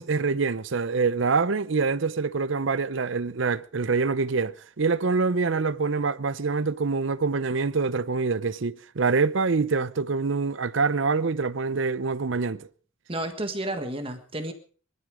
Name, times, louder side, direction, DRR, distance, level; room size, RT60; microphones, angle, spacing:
voice 1, 0.0-12.7, right 4 dB, 70° right, 0.7 m, -25 dB
voice 2, 13.1-14.5, right 1 dB, 25° right, 1.6 m, -31 dB
22.0 x 12.5 x 5.0 m
head